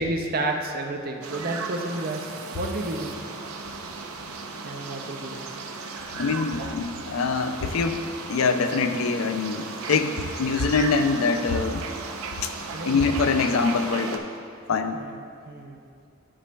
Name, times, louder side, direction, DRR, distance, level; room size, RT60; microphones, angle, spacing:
voice 1, 0.0-2.3 2.6-3.2 4.6-5.7 12.7-12.9 14.9-15.2 15.5-15.8, right 2 dB, 45° right, 3 dB, 0.5 m, -31 dB
sound 1, 1.2-14.2, right 4 dB, 85° right, 0.6 m, -36 dB
voice 2, 6.2-8.0 8.3-11.9 12.4-12.5 12.8-14.2 14.7-15.0, left 4 dB, 80° left, 8 dB, 0.4 m, -24 dB
11.0 x 6.1 x 2.3 m, 2.3 s
head